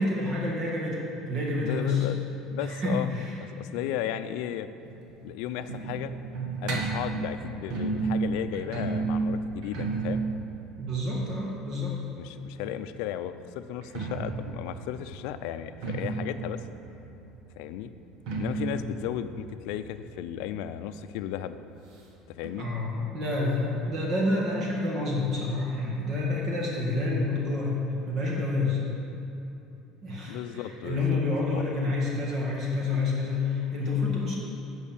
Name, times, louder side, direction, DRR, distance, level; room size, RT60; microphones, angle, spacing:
voice 1, 0.0-2.1 2.6-3.3 10.8-12.0 22.6-27.8 28.1-28.8 30.0-34.4, left 2 dB, 40° right, -3 dB, 1.7 m, -28 dB
voice 2, 1.6-2.2 2.5-3.1 3.4-4.7 5.2-6.1 6.6-10.3 12.2-16.6 17.6-17.9 18.3-21.6 22.3-22.7 30.3-31.2 31.5-31.6, left 11 dB, 75° left, 11 dB, 0.5 m, -35 dB
sound 1, 4.8-12.5 13.7-21.1 21.3-21.4 21.7-21.8 22.4-22.5, right 3 dB, 60° right, 1.3 m, -33 dB
8.4 x 6.3 x 7.2 m, 3.0 s
cardioid pair, 140°, 0 cm